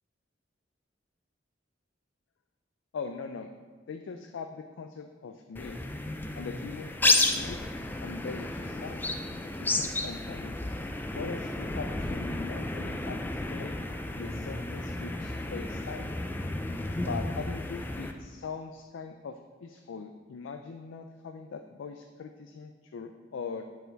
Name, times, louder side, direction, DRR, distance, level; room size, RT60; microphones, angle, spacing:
voice 1, 2.9-3.5 3.9-5.8 6.4-7.6 8.0-9.0 9.6-10.6 11.1-13.8 14.1-16.1 17.0-23.6, left 5 dB, 80° left, 6 dB, 0.4 m, -41 dB
sound 1, 5.6-18.1, left 2 dB, 10° left, 0.3 m, -32 dB
9.1 x 4.2 x 4.0 m, 1.5 s
head